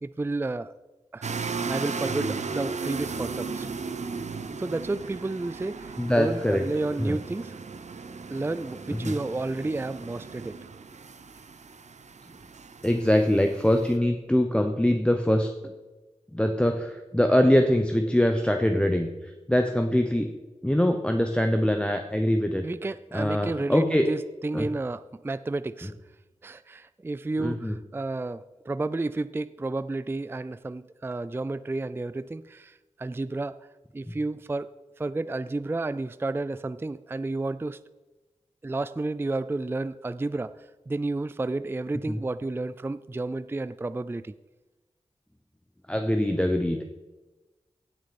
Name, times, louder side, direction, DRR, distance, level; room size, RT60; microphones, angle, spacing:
voice 1, 0.0-0.7 1.1-3.7 4.6-7.6 8.3-10.6 22.6-25.9 26.4-33.6 33.9-34.7 35.0-37.8 38.6-44.3, right 2 dB, 20° right, 14 dB, 0.3 m, -31 dB
sound 1, 1.2-13.9, right 4 dB, 70° right, 0.7 m, -36 dB
voice 2, 6.0-6.6 7.0-7.1 9.0-9.1 12.8-15.7 16.3-19.1 19.5-20.3 20.6-22.6 23.1-24.0 24.5-24.7 27.4-27.8 34.1-34.2 42.1-42.2 45.9-46.8, left 1 dB, 10° left, 5 dB, 0.8 m, -23 dB
16.5 x 6.4 x 4.2 m, 1.1 s
wide cardioid pair, 55°, 12 cm